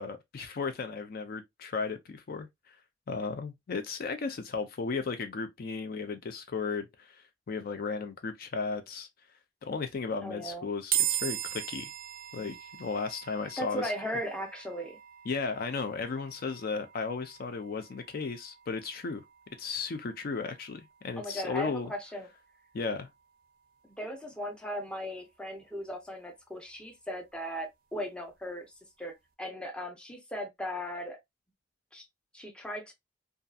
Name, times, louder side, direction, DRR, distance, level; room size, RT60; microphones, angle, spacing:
voice 1, 0.0-2.8 3.1-9.1 9.6-11.9 12.3-13.9 15.3-19.2 19.6-21.9 22.7-23.1, left 4 dB, 50° left, 0.4 m, -35 dB
voice 2, 10.2-10.7 13.6-15.0 21.2-22.3 23.8-28.7 29.0-31.2 31.9-32.0 32.3-32.9, equal, 5° left, 0.5 m, -37 dB
sound 1, 10.9-24.2, right 12 dB, 50° right, 0.4 m, -40 dB
2.6 x 2.3 x 2.2 m
head